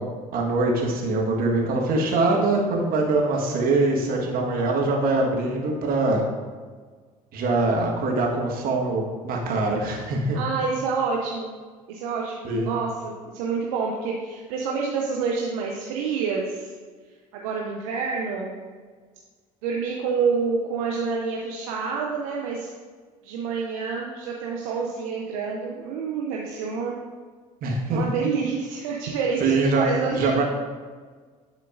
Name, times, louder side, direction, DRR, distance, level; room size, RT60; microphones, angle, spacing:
voice 1, 0.0-6.2 7.3-10.4 12.4-12.8 27.6-28.0 29.4-30.4, right 2 dB, 55° right, 0 dB, 1.4 m, -23 dB
voice 2, 10.3-11.5 11.9-16.7 17.3-18.5 19.6-22.7 23.2-27.0 27.9-30.3, right 5 dB, 75° right, -1 dB, 0.7 m, -28 dB
10.5 x 4.5 x 2.5 m, 1.5 s
hypercardioid pair, 65°, 18 cm